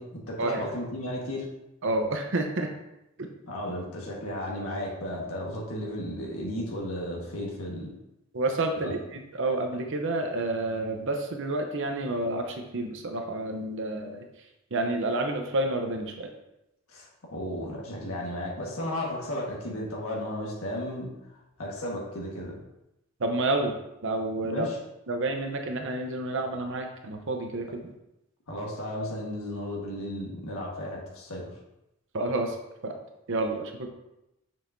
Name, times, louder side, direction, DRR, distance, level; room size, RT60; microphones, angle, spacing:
voice 1, 0.0-1.4 3.5-7.9 8.8-8.9 16.9-21.1 21.6-22.6 24.5-24.7 28.5-31.4, left 1 dB, 85° left, -3 dB, 1.5 m, -34 dB
voice 2, 1.8-2.7 3.2-3.3 8.3-16.3 23.2-23.8 24.0-24.7 25.1-27.9 32.1-32.6 32.8-32.9 33.3-33.9, right 2 dB, 65° right, 4 dB, 0.7 m, -29 dB
7.2 x 6.3 x 2.6 m, 0.89 s
head